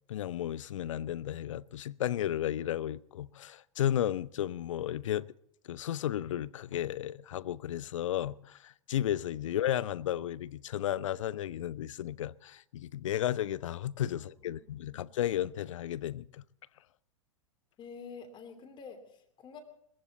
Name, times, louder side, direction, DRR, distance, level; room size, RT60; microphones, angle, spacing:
voice 1, 0.1-5.3 5.6-16.4, left 11 dB, 70° left, 0.5 m, -33 dB
voice 2, 14.2-14.6 14.9-15.1 17.8-19.6, left 5 dB, 30° left, 2.8 m, -48 dB
20.0 x 15.5 x 4.1 m
hypercardioid pair, 105°, 17 cm